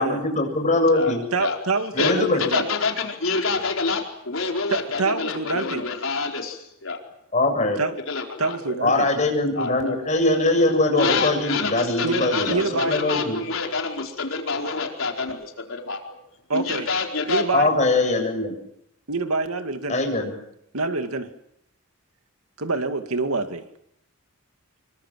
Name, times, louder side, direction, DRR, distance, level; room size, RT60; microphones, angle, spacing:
voice 1, 0.0-1.2 1.9-2.4 7.3-7.8 8.8-13.4 17.5-18.5 19.9-20.3, left 2 dB, 35° left, 3 dB, 7.7 m, -22 dB
voice 2, 1.3-2.6 4.7-5.9 7.8-7.9 8.4-9.1 12.0-13.0 16.5-16.9 17.3-17.7 19.1-20.0 20.7-21.3 22.6-23.6, right 3 dB, 80° right, 8 dB, 2.3 m, -26 dB
voice 3, 2.4-7.0 8.1-8.8 9.6-9.9 11.0-16.0 16.5-17.5, left 4 dB, 65° left, 2 dB, 4.6 m, -27 dB
26.5 x 24.0 x 7.6 m, 0.77 s
head